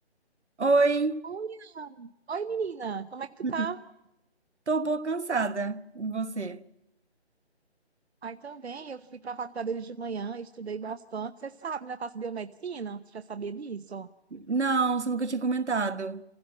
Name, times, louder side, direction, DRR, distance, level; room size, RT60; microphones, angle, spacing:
voice 1, 0.6-1.2 3.4-3.7 4.7-6.6 14.3-16.2, right 3 dB, 90° right, 1.3 m, -27 dB
voice 2, 1.2-3.8 8.2-14.1, right 5 dB, 70° right, 0.9 m, -36 dB
25.5 x 16.0 x 8.7 m
figure-of-eight pair, 160°, 34 cm